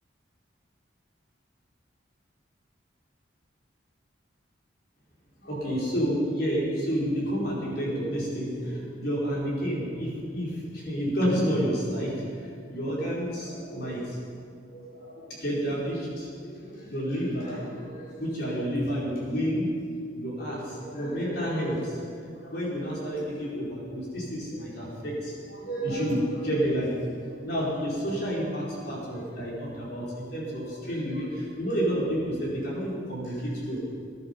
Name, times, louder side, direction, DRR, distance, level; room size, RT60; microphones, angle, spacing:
voice 1, 5.4-12.1 12.4-14.2 14.7-19.7 20.1-27.0 27.4-33.8, equal, 55° left, -5 dB, 4.5 m, -30 dB
20.0 x 10.5 x 5.2 m, 2.3 s
head